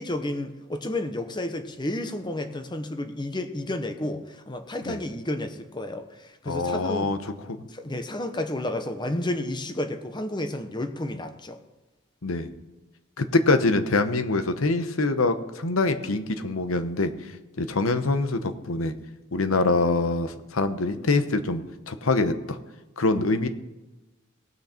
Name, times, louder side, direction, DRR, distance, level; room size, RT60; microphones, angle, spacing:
voice 1, 0.0-7.1 7.7-11.6, left 1 dB, 20° left, 7 dB, 0.9 m, -31 dB
voice 2, 6.5-7.2 12.2-12.5 13.2-17.1 17.6-18.9 19.3-22.6 23.0-23.5, left 3 dB, 80° left, 9 dB, 1.0 m, -24 dB
18.0 x 6.4 x 4.4 m, 1.1 s
head